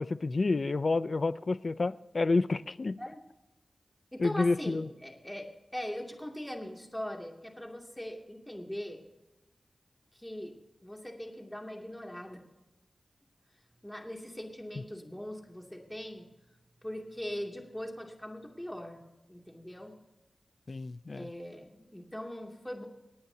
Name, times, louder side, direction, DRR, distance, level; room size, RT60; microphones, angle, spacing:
voice 1, 0.0-3.0 4.2-4.9 20.7-21.3, left 3 dB, 50° left, 15 dB, 0.5 m, -29 dB
voice 2, 4.1-9.0 10.1-10.5 10.8-12.4 13.8-16.3 16.8-19.0 19.3-20.0 21.1-22.9, equal, 10° left, 1 dB, 2.5 m, -41 dB
27.5 x 9.3 x 2.8 m, 1.0 s
wide cardioid pair, 70°, 0 cm